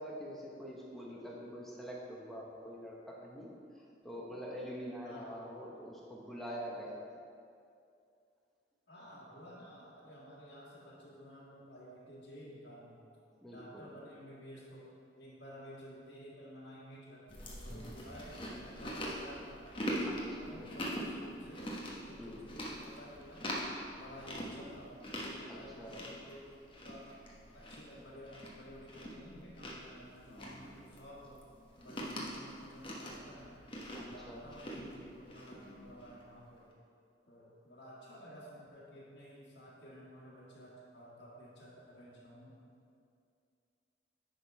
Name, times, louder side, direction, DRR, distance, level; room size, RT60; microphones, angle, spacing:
voice 1, 0.0-3.5 3.8-7.0 13.4-13.8 20.0-20.6 22.2-22.5 25.5-26.0 30.3-30.9 33.9-34.4 35.6-36.0, equal, ahead, -4 dB, 1.0 m, -45 dB
voice 2, 5.0-5.3 8.9-13.0 13.4-19.7 20.0-26.5 26.8-27.1 27.5-31.4 31.8-36.7 37.3-42.6, equal, 85° left, -8 dB, 1.8 m, -53 dB
Chewing mastication, 17.3-36.2, equal, 30° left, 1.0 m, -43 dB
10.0 x 3.8 x 4.7 m, 2.4 s
head